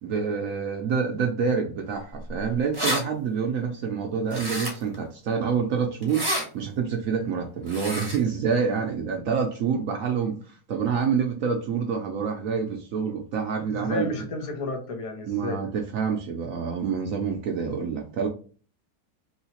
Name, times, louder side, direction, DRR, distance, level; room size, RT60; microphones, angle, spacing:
voice 1, 0.0-6.3 6.5-14.1 15.2-18.3, right 6 dB, 65° right, 0.9 m, -27 dB
sound 1, 2.3-2.4 2.5-3.0 4.3-4.9 6.0-6.4 7.7-8.2, equal, 20° right, 0.8 m, -29 dB
voice 2, 13.7-15.6, left 2 dB, 60° left, 0.3 m, -32 dB
3.1 x 2.9 x 2.8 m
omnidirectional pair, 1.7 m